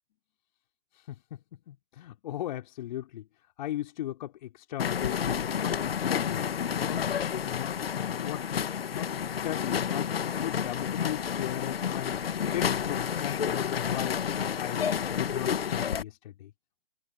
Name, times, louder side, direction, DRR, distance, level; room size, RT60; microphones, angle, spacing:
voice 1, 0.9-3.3 3.6-5.3 5.6-8.6 8.9-12.2 12.5-14.2 14.6-16.5, left 13 dB, 45° left, 3.7 m, -38 dB
sound 1, 4.8-16.0, left 8 dB, 70° left, 1.3 m, -30 dB
figure-of-eight pair, 130°, 31 cm